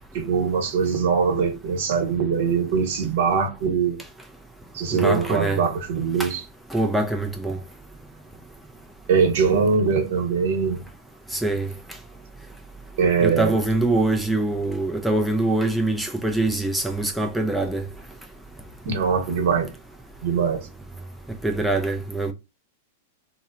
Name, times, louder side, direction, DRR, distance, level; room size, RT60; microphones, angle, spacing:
voice 1, 0.1-4.0 4.7-6.4 9.1-10.8 13.0-13.6 18.8-19.7 20.2-20.7, right 5 dB, 65° right, 0.9 m, -22 dB
voice 2, 5.0-5.6 6.2-6.3 6.7-7.6 11.3-11.7 13.2-17.8 21.4-22.3, right 2 dB, ahead, 0.3 m, -23 dB
2.7 x 2.0 x 2.4 m
hypercardioid pair, 140°, 0 cm